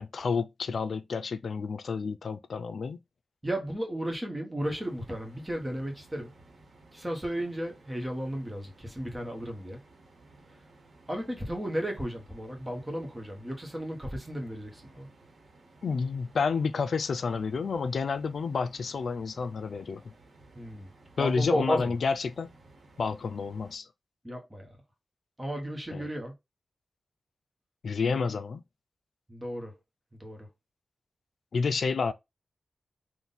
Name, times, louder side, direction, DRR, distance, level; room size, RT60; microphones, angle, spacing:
voice 1, 0.0-3.0 15.8-20.1 21.2-22.5 23.0-23.9 25.9-26.1 27.8-28.6 31.5-32.1, left 5 dB, 75° left, 0.4 m, -30 dB
voice 2, 3.4-6.3 6.9-9.8 11.1-15.1 20.5-20.9 21.2-22.0 24.2-24.8 25.4-26.3 29.3-29.8 30.1-30.5, equal, 15° right, 1.2 m, -34 dB
sound 1, 4.7-23.8, right 2 dB, 80° right, 1.5 m, -57 dB
3.7 x 2.6 x 4.0 m
wide cardioid pair, 105°, 0 cm